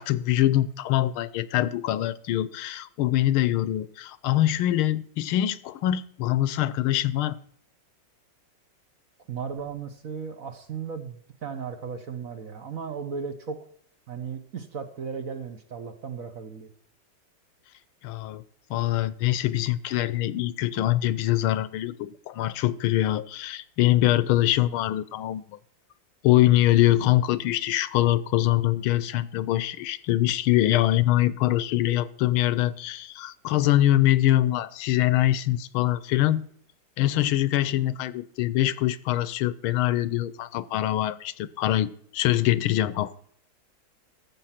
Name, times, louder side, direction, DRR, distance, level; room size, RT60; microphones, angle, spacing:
voice 1, 0.0-7.4 18.0-18.4 18.7-25.6 26.2-36.5 37.0-43.2, left 14 dB, 85° left, 1.5 m, -24 dB
voice 2, 9.3-13.6 14.1-16.7, right 6 dB, 50° right, 1.2 m, -36 dB
13.5 x 7.6 x 5.8 m
omnidirectional pair, 2.3 m